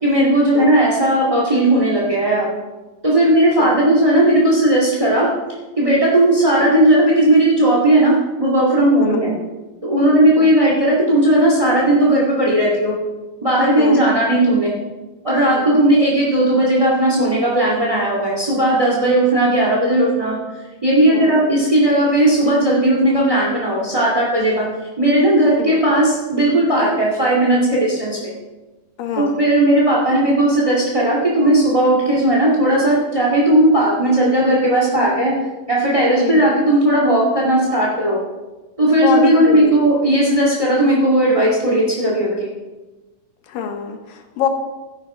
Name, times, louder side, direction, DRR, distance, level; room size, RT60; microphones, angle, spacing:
voice 1, 0.0-2.5 3.0-5.3 5.8-9.3 9.8-12.9 13.4-14.7 15.2-20.4 20.8-24.6 25.0-28.2 29.2-35.3 35.7-38.2 38.8-42.5, right 1 dB, 15° right, -4 dB, 1.1 m, -16 dB
voice 2, 9.0-9.4 10.4-10.5 13.8-14.0 15.6-15.8 21.1-21.4 25.6-25.8 29.0-29.5 36.2-36.5 39.0-39.8 43.5-44.5, left 7 dB, 75° left, 5 dB, 2.5 m, -25 dB
14.0 x 11.0 x 4.4 m, 1.1 s
omnidirectional pair, 4.4 m